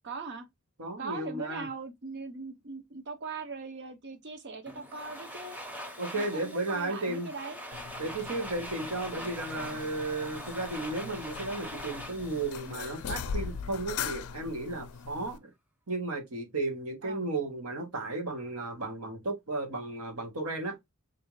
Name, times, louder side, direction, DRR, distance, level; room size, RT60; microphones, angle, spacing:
voice 1, 0.0-0.5 1.0-5.6 6.1-7.6 17.0-17.2, right 4 dB, 50° right, 0.7 m, -40 dB
voice 2, 0.8-1.7 6.0-7.3 8.0-15.5 15.9-20.8, right 2 dB, 75° right, 1.0 m, -34 dB
Domestic sounds home sounds, 4.7-13.6, equal, 5° right, 0.7 m, -43 dB
sound 1, 7.7-15.4, left 6 dB, 90° left, 0.4 m, -40 dB
3.5 x 2.6 x 2.9 m
head